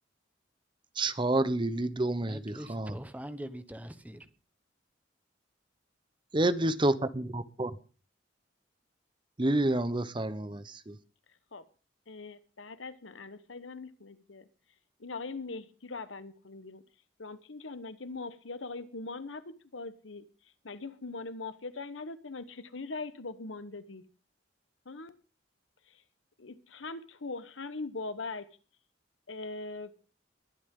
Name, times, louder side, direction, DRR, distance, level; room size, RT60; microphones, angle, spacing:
voice 1, 1.0-2.9 6.3-7.7 9.4-11.0, right 2 dB, 25° right, 14 dB, 0.9 m, -29 dB
voice 2, 2.3-4.3, equal, 10° right, 10 dB, 1.2 m, -43 dB
voice 3, 12.1-14.5 15.0-16.8 17.2-20.3 20.6-24.0 24.8-25.1 25.9-26.0 26.4-28.5 29.3-29.9, left 3 dB, 85° left, 14 dB, 1.1 m, -41 dB
21.5 x 11.0 x 3.8 m, 0.37 s
head